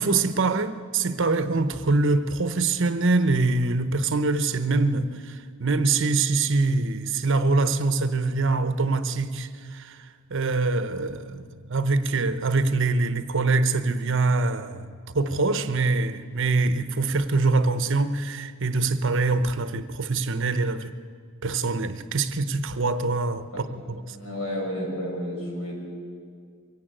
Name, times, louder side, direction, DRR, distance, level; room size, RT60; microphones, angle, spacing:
voice 1, 0.0-10.0 10.3-14.9 15.1-20.9 21.4-24.2, right 3 dB, 55° right, 0.9 m, -24 dB
voice 2, 24.1-25.9, equal, 65° left, 6.5 m, -31 dB
23.0 x 16.5 x 9.0 m
head